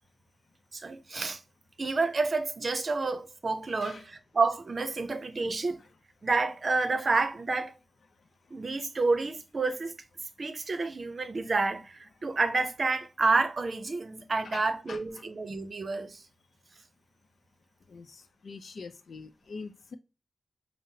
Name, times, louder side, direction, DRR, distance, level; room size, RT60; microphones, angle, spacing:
voice 1, 0.7-1.4 1.8-5.8 6.2-7.8 8.5-9.9 10.4-16.2, right 3 dB, 50° right, 0.6 m, -29 dB
voice 2, 14.4-15.0 17.9-20.0, left 4 dB, 80° left, 0.5 m, -44 dB
5.5 x 2.0 x 2.7 m
wide cardioid pair, 115°, 0 cm